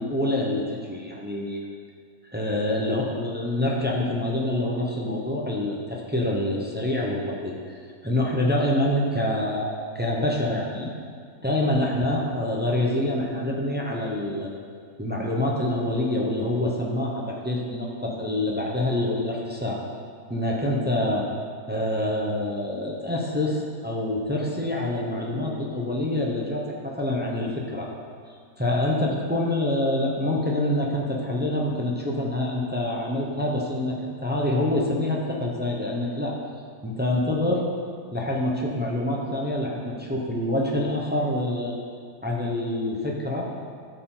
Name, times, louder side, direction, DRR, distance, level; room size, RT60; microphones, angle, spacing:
voice 1, 0.0-1.6 2.3-10.9 11.4-14.6 15.0-19.8 20.3-21.3 21.7-27.9 28.6-36.3 36.8-37.6 38.1-41.7 42.2-43.5, left 1 dB, 15° right, -2 dB, 0.4 m, -26 dB
12.5 x 4.4 x 3.8 m, 2.1 s
omnidirectional pair, 1.7 m